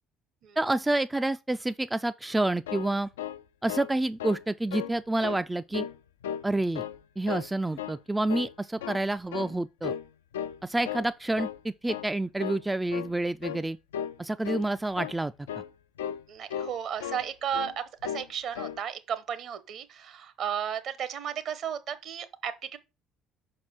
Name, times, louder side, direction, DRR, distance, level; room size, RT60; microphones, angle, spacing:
voice 1, 0.6-3.1 3.6-5.9 6.4-6.8 7.2-9.9 10.6-13.8 14.2-15.6, right 2 dB, 10° right, 0.3 m, -28 dB
sound 1, 2.4-3.9 4.2-4.4 4.7-5.4 5.7-6.5 6.7-7.5 7.8-8.0 8.3-9.1 9.3-9.6 9.8-10.1 10.3-11.1 11.3-11.6 11.9-12.1 12.4-12.6 12.9-13.1 13.4-13.6 13.9-14.2 14.4-14.7 14.9-15.2 15.5-15.7 16.0-16.2 16.5-17.3 17.5-17.7 18.0-18.3 18.5-18.8, left 10 dB, 75° left, 0.3 m, -35 dB
voice 2, 16.3-22.8, right 8 dB, 55° right, 1.0 m, -34 dB
5.6 x 4.8 x 5.8 m
figure-of-eight pair, 50°, 0 cm